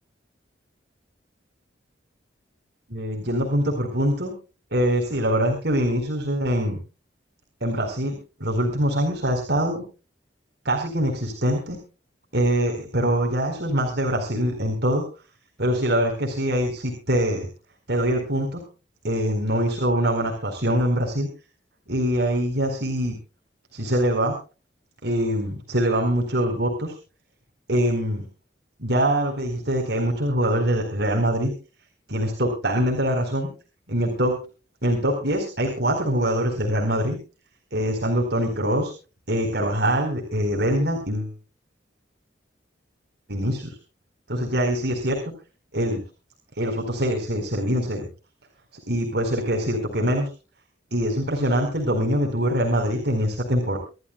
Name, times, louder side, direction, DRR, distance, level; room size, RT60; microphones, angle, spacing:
voice 1, 2.9-4.3 4.7-6.8 7.6-9.8 10.6-11.8 12.3-15.0 15.6-17.5 17.9-18.6 19.0-21.3 21.9-23.1 23.7-24.3 25.0-26.9 27.7-28.2 28.8-31.5 32.1-33.5 33.9-34.3 34.8-37.2 37.7-38.9 39.3-41.4 43.3-43.7 44.3-45.2 45.7-46.0 46.6-48.1 48.9-50.3 50.9-53.8, equal, 55° right, 1 dB, 4.3 m, -23 dB
27.0 x 13.0 x 2.3 m, 0.34 s
head